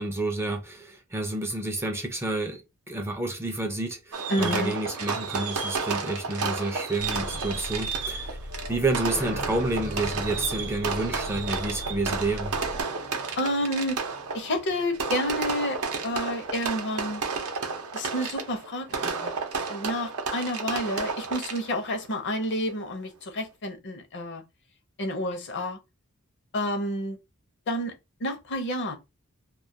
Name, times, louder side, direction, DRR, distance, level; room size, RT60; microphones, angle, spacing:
voice 1, 0.0-2.6 2.9-8.4 8.7-12.6, right 2 dB, 10° right, 0.4 m, -29 dB
Fireworks, 4.1-21.9, right 4 dB, 85° right, 0.6 m, -32 dB
voice 2, 4.3-4.7 13.4-14.0 14.3-17.2 17.9-19.3 19.7-24.4 25.0-25.8 26.5-27.2 27.7-27.9 28.2-29.0, left 1 dB, 55° left, 0.6 m, -29 dB
Alarm, 7.0-12.8, left 1 dB, 90° left, 0.7 m, -39 dB
sound 1, 9.0-16.3, right 2 dB, 45° right, 0.7 m, -42 dB
2.2 x 2.1 x 2.6 m
head